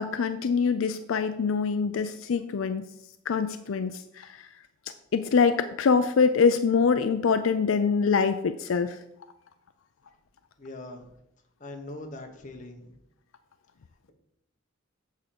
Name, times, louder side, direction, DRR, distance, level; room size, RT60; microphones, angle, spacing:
voice 1, 0.0-2.8 3.3-4.4 5.1-9.0, left 5 dB, 85° left, 10 dB, 0.4 m, -24 dB
voice 2, 10.6-11.1 11.6-13.0, left 2 dB, 40° left, 3 dB, 1.2 m, -41 dB
8.2 x 3.7 x 6.6 m, 0.78 s
head